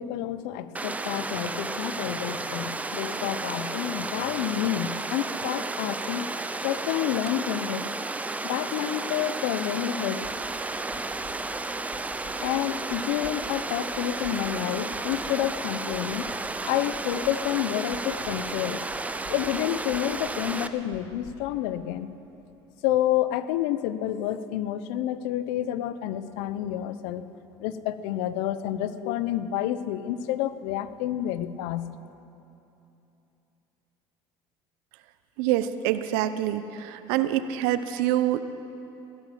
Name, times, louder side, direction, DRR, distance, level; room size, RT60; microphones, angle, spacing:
voice 1, 0.0-6.3 6.6-7.9 8.4-10.3 12.4-16.3 16.6-18.8 19.3-22.1 22.8-27.2 27.6-31.9, left 12 dB, 80° left, 13 dB, 0.7 m, -29 dB
Water, 0.7-20.7, right 3 dB, 10° right, 0.7 m, -33 dB
sound 1, 10.2-10.3 10.9-11.3 11.9-12.3 12.9-13.3 13.9-14.3 14.9-15.3 15.9-16.3 16.9-17.3 17.9-18.3 18.9-19.3 19.9-20.3 20.9-21.3, left 3 dB, 65° left, 2.7 m, -48 dB
voice 2, 35.4-38.4, right 12 dB, 80° right, 12 dB, 0.8 m, -26 dB
16.0 x 11.5 x 7.3 m, 2.9 s
supercardioid pair, 105°, 12 cm